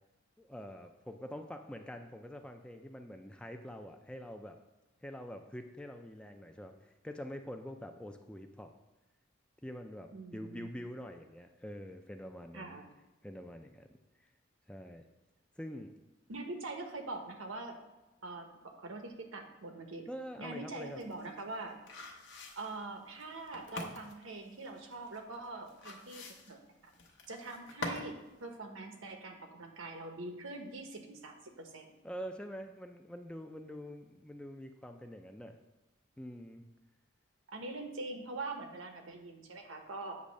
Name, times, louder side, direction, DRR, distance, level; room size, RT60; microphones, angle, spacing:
voice 1, 0.4-4.6 5.0-8.7 9.6-12.8 13.2-13.9 14.7-15.0 15.6-15.9 20.1-21.0 32.0-35.6 36.2-36.6, equal, 5° left, 5 dB, 0.3 m, -45 dB
voice 2, 10.1-10.7 12.5-12.9 16.3-17.8 18.2-20.0 20.4-21.8 22.6-26.6 27.3-31.9 37.5-40.2, right 2 dB, 90° right, 4 dB, 1.1 m, -43 dB
sound 1, 20.8-28.2 28.5-28.6, left 2 dB, 65° left, 0.9 m, -45 dB
8.2 x 3.1 x 6.4 m, 1.1 s
head